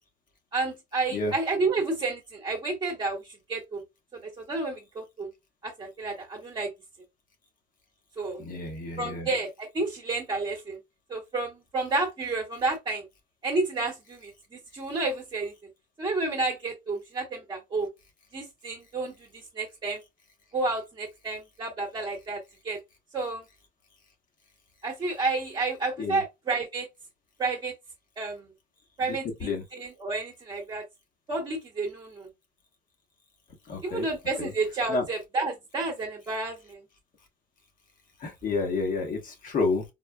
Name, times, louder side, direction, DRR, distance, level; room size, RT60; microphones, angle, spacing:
voice 1, 0.5-3.2 3.5-3.8 4.1-5.3 5.6-6.7 8.2-8.4 9.0-10.8 11.1-13.0 13.4-14.3 14.7-15.5 16.0-17.9 18.3-19.1 19.5-20.0 20.5-22.8 23.1-23.4 24.8-26.9 27.4-27.7 28.2-28.5 29.0-30.8 31.3-32.3 33.8-36.8, right 3 dB, 30° right, 0.9 m, -30 dB
voice 2, 8.4-9.3 26.0-26.2 29.4-29.6 33.7-34.1 34.4-34.5 34.9-35.0 38.2-39.8, left 3 dB, 55° left, 1.3 m, -29 dB
4.3 x 2.1 x 2.2 m
cardioid pair, 110°, 17 cm